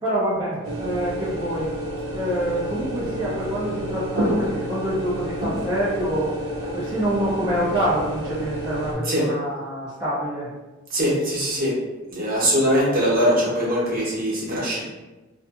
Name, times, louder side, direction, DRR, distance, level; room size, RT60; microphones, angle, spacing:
voice 1, 0.0-1.7 2.1-6.3 6.7-10.5, right 1 dB, 20° right, -11 dB, 0.5 m, -26 dB
sound 1, 0.6-8.9, right 1 dB, 80° right, 0.6 m, -30 dB
voice 2, 10.9-11.7 12.1-14.8, equal, 45° right, -6 dB, 0.9 m, -21 dB
2.6 x 2.5 x 2.4 m, 1.1 s
head